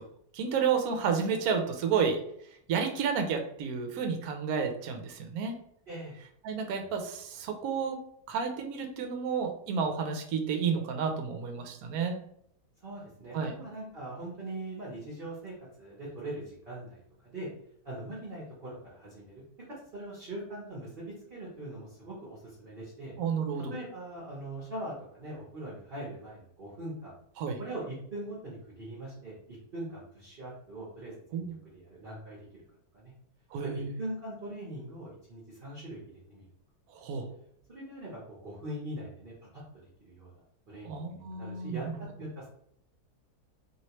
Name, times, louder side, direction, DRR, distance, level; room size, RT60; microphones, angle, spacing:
voice 1, 0.3-2.2 2.7-5.5 6.4-8.0 8.3-12.2 13.3-13.5 23.2-23.7 27.4-27.6 31.3-31.6 33.5-33.9 36.9-37.3 40.8-42.0, right 6 dB, 70° right, 4 dB, 1.0 m, -31 dB
voice 2, 12.8-17.5 17.8-19.4 19.9-23.1 23.7-27.1 27.6-31.5 31.7-32.4 32.9-33.1 33.6-36.0 36.3-36.4 37.7-39.3 40.0-40.3 40.7-41.8 42.2-42.5, right 1 dB, 40° right, -7 dB, 0.9 m, -41 dB
3.1 x 3.0 x 2.9 m, 0.69 s
omnidirectional pair, 1.8 m